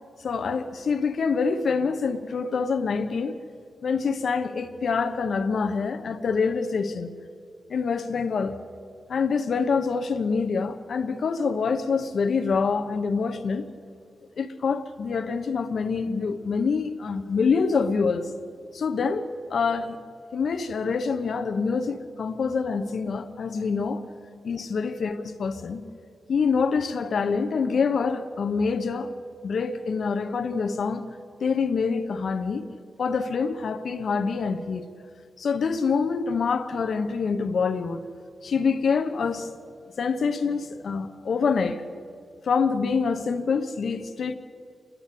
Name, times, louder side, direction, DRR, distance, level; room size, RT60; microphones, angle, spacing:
voice 1, 0.2-3.4 3.8-7.1 7.7-8.6 9.1-13.6 14.4-18.3 18.7-20.0 20.3-24.0 24.4-25.8 26.3-29.1 29.4-31.0 31.4-32.6 33.0-34.8 35.4-38.1 38.4-39.5 40.0-41.8 42.4-44.3, left 5 dB, 75° left, 0.9 m, -26 dB
30.0 x 11.5 x 8.4 m
cardioid pair, 85°, 0 cm